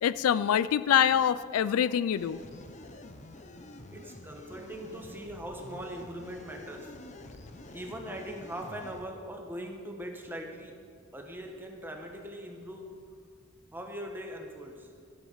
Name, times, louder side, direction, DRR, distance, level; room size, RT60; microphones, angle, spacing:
voice 1, 0.0-2.4, left 9 dB, 80° left, 16 dB, 0.3 m, -25 dB
sound 1, 2.2-9.1, left 2 dB, 35° left, 0.7 m, -48 dB
voice 2, 3.9-7.0 7.7-10.8 11.1-13.0 13.7-14.9, equal, 10° right, 2 dB, 1.1 m, -41 dB
13.5 x 8.2 x 5.6 m, 2.2 s
head